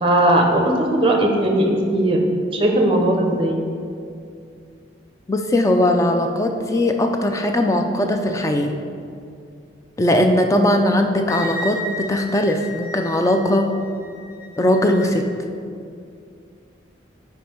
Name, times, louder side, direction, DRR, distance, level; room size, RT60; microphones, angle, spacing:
voice 1, 0.0-2.2 2.5-3.6, right 1 dB, 30° right, 2 dB, 0.6 m, -18 dB
voice 2, 5.3-8.7 10.0-13.7 14.6-15.3, left 1 dB, 15° left, 4 dB, 0.3 m, -19 dB
Wind instrument woodwind instrument, 11.3-15.1, left 1 dB, 50° left, 0.7 m, -34 dB
5.2 x 4.6 x 4.4 m, 2.4 s
head